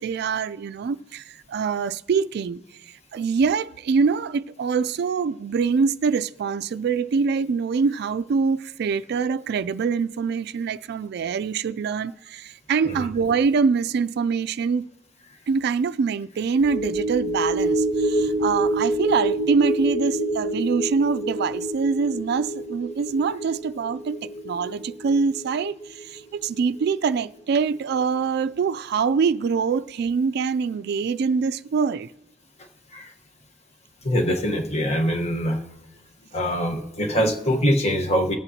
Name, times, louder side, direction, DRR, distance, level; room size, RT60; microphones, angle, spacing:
voice 1, 0.0-2.6 3.1-14.9 15.5-32.1, right 5 dB, 60° right, 0.3 m, -24 dB
sound 1, 16.6-27.2 27.6-27.7, right 1 dB, 90° left, 1.7 m, -27 dB
voice 2, 34.0-35.6 36.3-38.4, equal, 35° left, 1.2 m, -23 dB
20.0 x 8.0 x 2.8 m
head